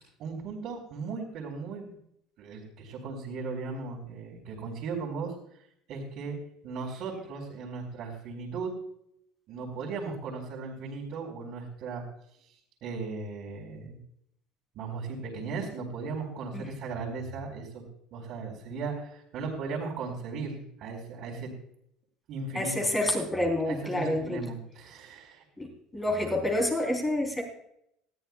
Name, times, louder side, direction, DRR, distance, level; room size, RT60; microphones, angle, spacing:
voice 1, 0.2-2.0 2.4-5.3 5.9-6.4 6.6-8.7 9.5-12.0 12.8-14.0 14.7-17.8 18.1-21.5 22.3-22.9 23.7-25.7, right 4 dB, 55° right, -5 dB, 3.7 m, -37 dB
voice 2, 22.5-24.4 25.6-27.4, left 1 dB, 15° left, 2 dB, 3.6 m, -28 dB
20.0 x 13.5 x 2.3 m, 0.73 s
cardioid pair, 125°, 0 cm